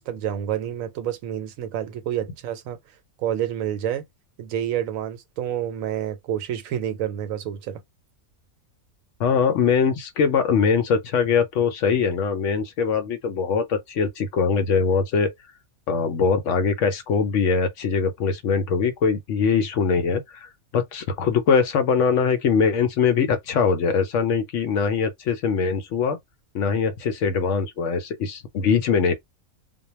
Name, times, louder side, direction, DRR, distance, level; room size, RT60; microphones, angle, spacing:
voice 1, 0.0-2.8 3.2-4.0 4.4-7.8, right 10 dB, 75° right, 1.0 m, -28 dB
voice 2, 9.2-15.3 15.9-26.2 26.5-29.1, left 5 dB, 70° left, 0.9 m, -22 dB
2.2 x 2.2 x 3.0 m
omnidirectional pair, 1.5 m